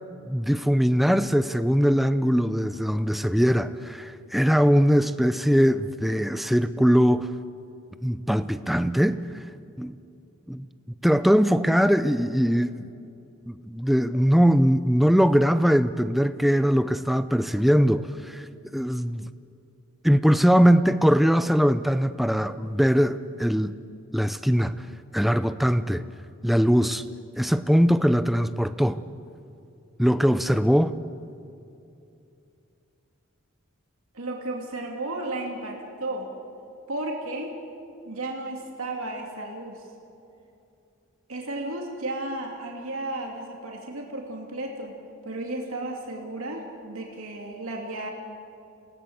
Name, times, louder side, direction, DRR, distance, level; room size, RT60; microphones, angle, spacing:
voice 1, 0.3-7.3 8.0-9.2 9.8-9.9 10.5-10.7 11.0-12.8 13.5-18.5 18.7-19.3 20.0-23.7 24.1-24.9 25.1-26.0 26.4-27.0 27.4-29.0 30.0-30.9, equal, ahead, 12 dB, 0.5 m, -21 dB
voice 2, 34.1-36.3 36.9-37.5 38.1-39.9 41.3-45.0 45.2-48.1, right 2 dB, 80° right, 0 dB, 2.6 m, -33 dB
28.0 x 18.0 x 7.9 m, 2.7 s
head